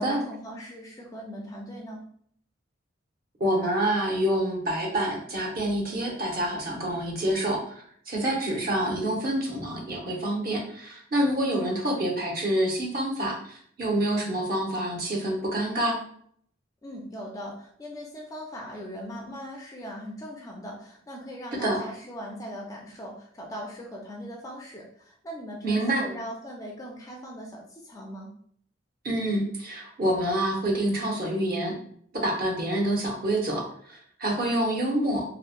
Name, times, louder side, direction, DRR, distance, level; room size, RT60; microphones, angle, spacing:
voice 1, 0.0-2.0 16.8-28.3, equal, 15° left, -1 dB, 0.3 m, -40 dB
voice 2, 3.4-7.6 8.1-16.0 21.6-21.8 25.6-26.0 29.0-31.8 32.2-35.2, right 1 dB, 45° right, -1 dB, 0.7 m, -27 dB
2.9 x 2.0 x 2.4 m, 0.62 s
head